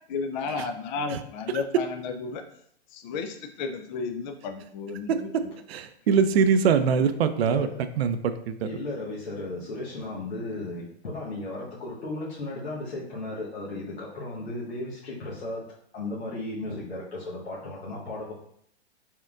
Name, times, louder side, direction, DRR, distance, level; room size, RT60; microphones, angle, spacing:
voice 1, 0.1-2.4 2.9-5.5, left 4 dB, 45° left, 6 dB, 0.4 m, -33 dB
voice 2, 5.7-7.7 8.0-8.5, right 6 dB, 70° right, 10 dB, 0.5 m, -22 dB
voice 3, 7.3-7.8 8.6-15.7 15.9-18.3, left 2 dB, 85° left, -7 dB, 1.1 m, -35 dB
4.4 x 3.6 x 2.4 m, 0.67 s
hypercardioid pair, 125°, 32 cm